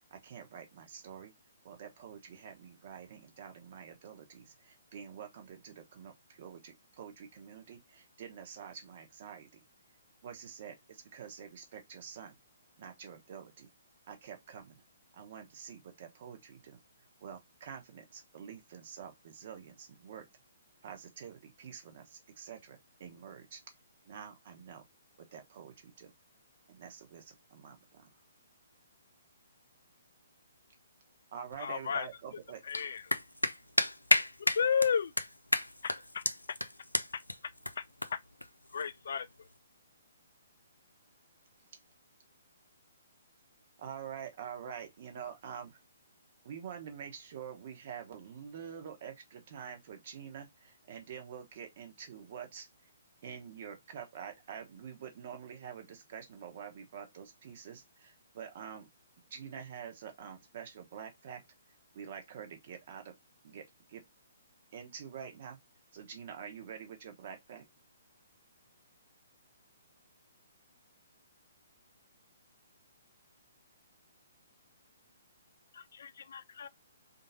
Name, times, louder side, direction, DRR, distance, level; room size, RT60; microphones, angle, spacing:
voice 1, 0.1-1.3 1.6-9.6 10.2-12.4 12.8-13.7 14.1-14.8 15.1-16.8 17.2-20.3 20.8-23.6 24.1-24.9 25.2-26.1 26.7-28.1 31.3-32.6 43.8-45.8 46.4-52.9 53.2-58.9 59.3-61.4 61.9-63.1 63.4-64.0 64.7-65.6 65.9-67.7, right 8 dB, 45° right, 1.1 m, -47 dB
voice 2, 31.6-32.1 32.7-33.0 34.6-35.1 37.8-37.9 38.7-39.3 75.7-76.7, left 7 dB, 55° left, 0.3 m, -32 dB
voice 3, 33.1-34.6 35.5-36.0 36.3-36.4 36.9-37.1, left 1 dB, 85° left, 0.7 m, -29 dB
3.7 x 2.7 x 4.0 m
figure-of-eight pair, 130°, 0 cm